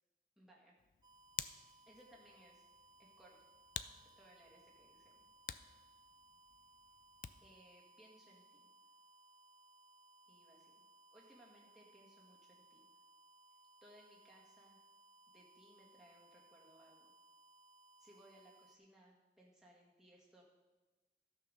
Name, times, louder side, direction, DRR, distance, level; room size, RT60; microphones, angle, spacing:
voice 1, 0.4-0.8 1.9-2.6 3.0-3.4 4.2-5.2 7.4-8.7 10.3-10.8 11.1-12.9 13.8-14.8 15.3-17.1 18.0-20.4, right 1 dB, 5° right, -4 dB, 1.9 m, -64 dB
Hands, 0.8-7.6, left 10 dB, 50° left, 0.4 m, -51 dB
sound 1, 1.0-18.8, right 2 dB, 20° right, 0.4 m, -65 dB
12.5 x 5.9 x 6.6 m, 1.2 s
head